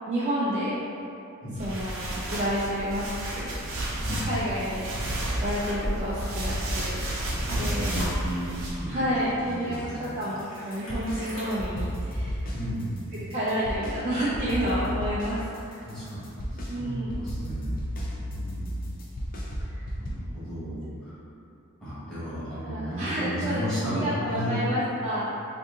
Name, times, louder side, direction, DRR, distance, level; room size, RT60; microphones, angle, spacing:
voice 1, 0.1-0.7 1.6-3.0 3.3-3.5 4.2-7.1 7.6-8.0 8.9-12.4 13.3-15.8 16.7-17.1 19.7-19.8 22.6-25.3, equal, 30° right, -9 dB, 0.4 m, -30 dB
voice 2, 1.4-1.8 4.0-4.3 7.4-10.2 12.5-13.1 15.8-16.3 16.6-17.8 18.3-18.8 19.6-21.2 21.8-24.7, equal, 5° left, -14 dB, 1.3 m, -34 dB
sound 1, 1.6-8.7, right 1 dB, 60° right, 0.7 m, -31 dB
sound 2, 7.0-13.4 13.6-13.7 14.1-14.8 15.6-15.7, equal, 65° left, 1.0 m, -45 dB
sound 3, 9.7-11.2 11.6-14.0 14.3-20.1, equal, 40° left, 0.5 m, -33 dB
2.6 x 2.6 x 3.7 m, 2.7 s
head